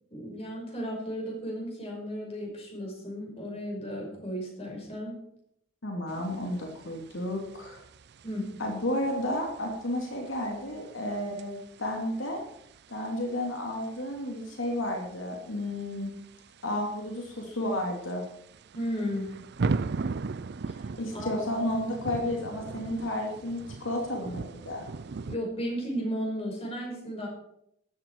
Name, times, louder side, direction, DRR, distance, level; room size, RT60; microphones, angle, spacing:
voice 1, 0.1-5.2 8.2-8.5 18.7-19.3 20.7-20.8 21.1-21.4 25.3-27.3, equal, 30° left, -1 dB, 5.6 m, -34 dB
voice 2, 5.8-7.8 8.6-12.4 12.9-16.1 16.6-18.2 21.0-24.9, left 1 dB, 85° left, 1 dB, 2.8 m, -32 dB
sound 1, 6.1-25.4, right 4 dB, 60° right, 0.5 m, -39 dB
14.5 x 12.0 x 4.7 m, 0.73 s
head